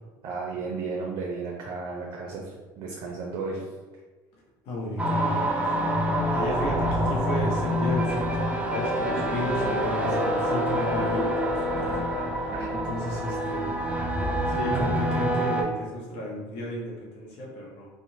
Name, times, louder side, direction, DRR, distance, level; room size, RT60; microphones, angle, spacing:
voice 1, 0.2-3.6, right 4 dB, 60° right, -2 dB, 0.5 m, -33 dB
voice 2, 4.7-5.8 6.3-11.9 12.4-13.8 14.5-17.9, left 1 dB, 65° left, -3 dB, 0.7 m, -33 dB
sound 1, 5.0-15.6, equal, 10° right, 0.5 m, -26 dB
2.8 x 2.0 x 2.7 m, 1.3 s
supercardioid pair, 85°, 10 cm